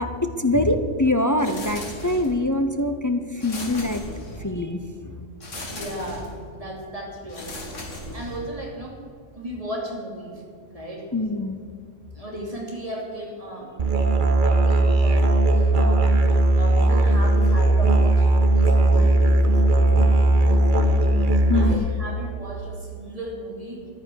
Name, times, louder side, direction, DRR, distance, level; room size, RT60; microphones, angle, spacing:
voice 1, 0.0-4.0 4.4-5.2 11.1-11.6 19.9-20.0 21.5-21.9, left 2 dB, 25° left, 7 dB, 0.4 m, -24 dB
sound 1, 1.4-2.5 3.4-4.6 5.4-6.4 7.3-8.6, left 1 dB, 85° left, 2.4 m, -37 dB
voice 2, 5.7-6.3 6.5-7.5 7.8-9.0 9.3-10.4 10.7-11.1 12.1-13.9 14.4-19.4 19.7-21.1 21.5-23.8, right 1 dB, 30° right, -2 dB, 3.0 m, -35 dB
Musical instrument, 13.8-21.7, right 2 dB, 45° right, 1.2 m, -18 dB
14.0 x 10.5 x 6.3 m, 2.3 s
omnidirectional pair, 1.2 m